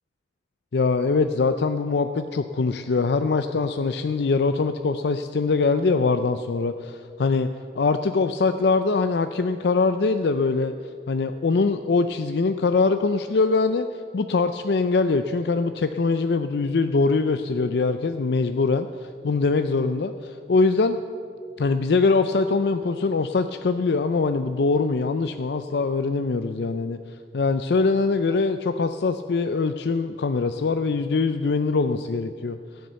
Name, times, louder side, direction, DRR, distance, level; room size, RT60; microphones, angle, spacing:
voice 1, 0.7-7.5 7.7-10.7 11.1-13.9 14.1-21.0 21.6-27.0 27.3-32.6, left 4 dB, 70° left, 9 dB, 0.4 m, -23 dB
15.0 x 9.3 x 6.9 m, 2.3 s
head